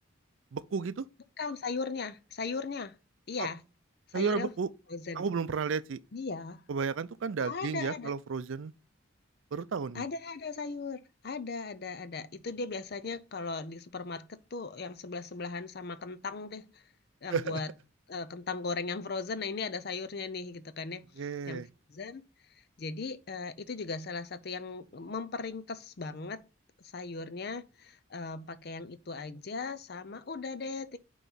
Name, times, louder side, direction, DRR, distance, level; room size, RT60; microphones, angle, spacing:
voice 1, 0.5-1.0 3.4-3.5 4.1-4.7 5.2-6.0 6.7-8.7 9.5-10.0 17.3-17.6 21.2-21.7, right 5 dB, 75° right, 0.4 m, -32 dB
voice 2, 1.4-2.9 3.3-3.6 4.1-4.5 4.9-5.3 6.1-6.6 7.4-8.1 9.9-16.8 17.2-17.7 18.1-21.0 21.5-21.6 21.9-22.2 22.8-26.4 26.9-31.0, left 4 dB, 50° left, 0.5 m, -37 dB
9.1 x 3.1 x 3.9 m
head